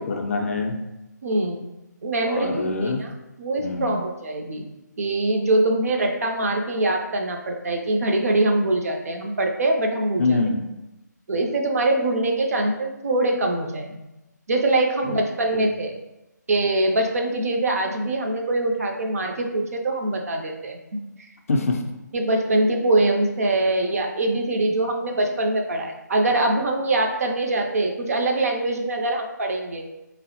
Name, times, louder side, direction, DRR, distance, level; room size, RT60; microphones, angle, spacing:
voice 1, 0.1-0.8 2.2-3.0 3.6-4.0 10.2-10.6 15.1-15.2 15.5-15.7 21.5-21.8, left 3 dB, 50° left, 3 dB, 0.3 m, -24 dB
voice 2, 1.2-1.6 2.0-3.1 3.4-4.6 5.0-10.4 11.3-14.1 14.5-15.9 16.5-20.8 21.2-21.3 22.1-29.8, right 2 dB, 55° right, 2 dB, 0.4 m, -23 dB
3.3 x 2.0 x 2.8 m, 0.97 s
figure-of-eight pair, 155°, 10 cm